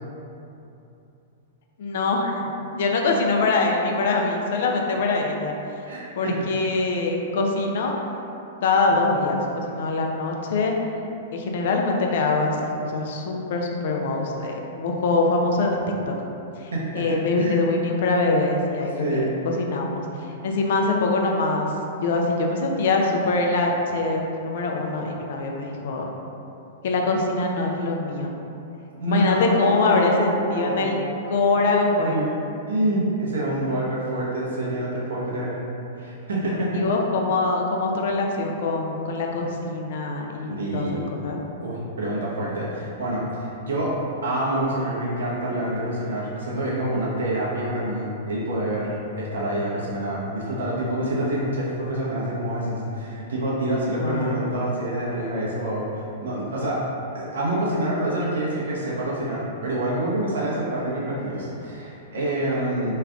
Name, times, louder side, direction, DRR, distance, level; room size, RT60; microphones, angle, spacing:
voice 1, 1.8-5.5 6.2-7.9 8.6-10.8 11.3-15.8 16.1-16.2 16.6-20.1 20.4-21.7 22.0-26.1 26.8-28.3 29.1-31.0 31.3-32.2 36.7-41.4 54.0-54.5, left 3 dB, 65° left, 1 dB, 0.5 m, -23 dB
voice 2, 5.9-6.3 16.7-17.6 19.0-19.3 29.0-30.2 30.5-30.9 31.5-31.6 31.8-32.3 32.7-35.5 36.0-36.8 40.5-41.0 41.6-44.0 44.2-56.8 57.1-62.9, right 1 dB, 85° right, -5 dB, 0.9 m, -27 dB
3.2 x 2.4 x 3.5 m, 2.8 s
hypercardioid pair, 120°, 0 cm